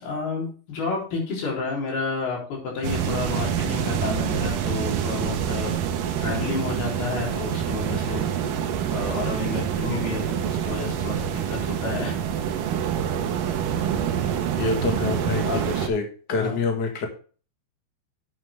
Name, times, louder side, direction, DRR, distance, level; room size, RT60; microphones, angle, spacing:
voice 1, 0.0-5.8 6.2-8.2 8.9-12.2 12.6-12.8 15.4-15.7 16.3-16.6, left 4 dB, 75° left, -2 dB, 5.7 m, -30 dB
sound 1, 2.8-15.9, right 9 dB, 70° right, 2.5 m, -26 dB
voice 2, 14.6-17.1, left 4 dB, 40° left, 3 dB, 1.5 m, -26 dB
10.5 x 8.0 x 3.6 m, 0.39 s
omnidirectional pair, 4.6 m